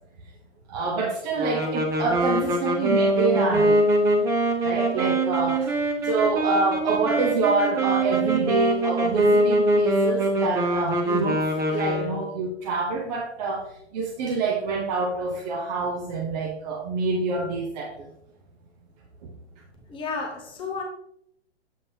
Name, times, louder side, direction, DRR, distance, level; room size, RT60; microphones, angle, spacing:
voice 1, 0.7-3.8 4.6-5.7 6.0-18.1 19.2-19.3, right 3 dB, 35° right, 0 dB, 0.9 m, -26 dB
sound 1, 1.4-12.3, right 1 dB, 10° right, 0.5 m, -23 dB
voice 2, 19.9-20.8, left 4 dB, 15° left, 0 dB, 0.9 m, -32 dB
7.5 x 5.2 x 2.7 m, 0.74 s
hypercardioid pair, 135°, 34 cm